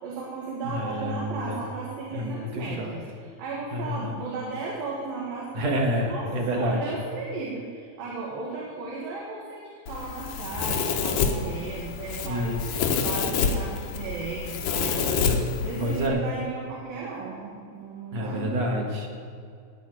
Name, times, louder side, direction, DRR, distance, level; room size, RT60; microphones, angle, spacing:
voice 1, 0.0-3.0 3.4-5.5 6.1-12.6 13.0-15.3 15.6-18.7, right 3 dB, 80° right, -4 dB, 3.5 m, -35 dB
voice 2, 0.6-1.6 2.1-3.0 3.7-4.2 5.5-6.9 12.2-12.8 15.2-15.4 15.8-16.2 18.1-19.1, equal, 55° right, 0 dB, 2.6 m, -28 dB
Domestic sounds home sounds, 9.9-16.1, left 5 dB, 70° left, 2.4 m, -28 dB
16.5 x 5.6 x 9.1 m, 2.3 s
omnidirectional pair, 4.0 m